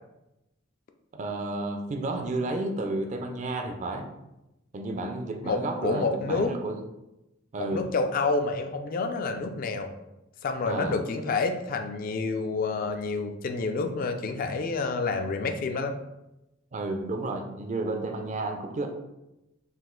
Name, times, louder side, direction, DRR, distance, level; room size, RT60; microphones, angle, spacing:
voice 1, 1.1-4.1 4.7-6.8 7.5-7.9 10.6-11.0 16.7-18.9, right 2 dB, 35° right, 5 dB, 0.4 m, -31 dB
voice 2, 5.4-6.5 7.6-9.9 10.4-16.0, left 3 dB, 45° left, 6 dB, 0.3 m, -28 dB
4.1 x 2.4 x 3.7 m, 0.93 s
head